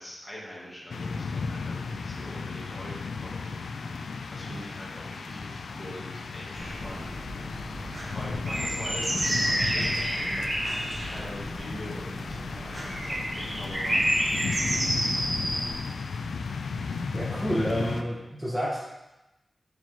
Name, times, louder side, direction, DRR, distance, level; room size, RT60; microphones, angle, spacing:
voice 1, 0.0-7.4 7.8-14.1, equal, 30° left, -6 dB, 2.3 m, -43 dB
sound 1, 0.9-18.0, left 4 dB, 90° left, 0.3 m, -35 dB
sound 2, 6.5-15.8, right 1 dB, 40° right, 1.3 m, -30 dB
voice 2, 17.1-18.8, equal, 10° right, -5 dB, 1.4 m, -29 dB
5.8 x 5.1 x 3.7 m, 0.97 s
cardioid pair, 45°, 0 cm